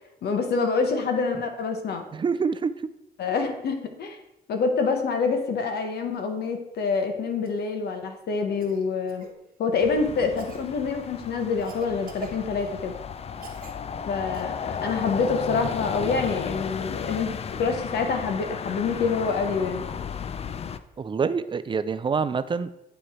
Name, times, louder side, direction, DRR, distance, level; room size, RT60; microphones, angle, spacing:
voice 1, 0.2-2.0 3.2-4.2 4.5-9.3 9.6-12.9 14.1-19.8, left 4 dB, 75° left, 5 dB, 1.0 m, -26 dB
voice 2, 2.1-2.7 21.0-22.8, right 5 dB, 30° right, 13 dB, 0.4 m, -26 dB
Cough, 7.4-7.7 8.6-9.3 10.4-10.7 11.6-12.8 13.4-13.8 14.3-14.4 16.3-16.4, right 6 dB, 60° right, 1.2 m, -43 dB
sound 1, 9.8-20.8, left 7 dB, 40° left, 0.4 m, -34 dB
9.6 x 3.3 x 4.2 m, 0.87 s
cardioid pair, 90°, 17 cm